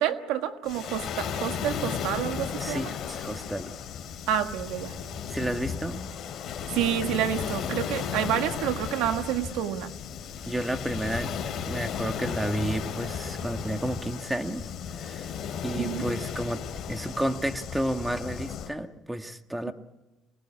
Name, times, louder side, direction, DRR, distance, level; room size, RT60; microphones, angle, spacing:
voice 1, 0.0-2.9 4.3-4.9 6.7-9.9 15.7-16.0 19.7-19.8, right 10 dB, 85° right, 8 dB, 1.4 m, -29 dB
Waves surf, 0.6-18.7, left 7 dB, 55° left, 2.7 m, -35 dB
voice 2, 2.5-3.7 5.3-6.1 10.4-11.3 11.6-15.3 15.6-19.7, right 1 dB, 5° right, 8 dB, 1.4 m, -31 dB
25.0 x 19.5 x 9.8 m, 1.1 s
cardioid pair, 100°, 0 cm